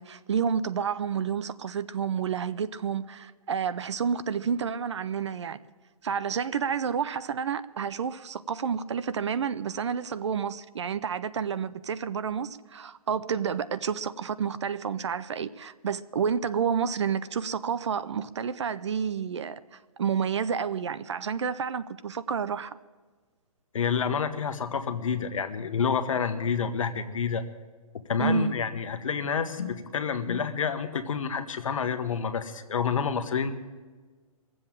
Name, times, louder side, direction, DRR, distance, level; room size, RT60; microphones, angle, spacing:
voice 1, 0.0-5.6 6.0-22.8 28.2-28.5, right 7 dB, 50° right, 0.5 m, -30 dB
voice 2, 23.7-27.4 28.1-33.5, left 6 dB, 60° left, 1.2 m, -28 dB
20.5 x 7.8 x 7.3 m
hypercardioid pair, 170°, 19 cm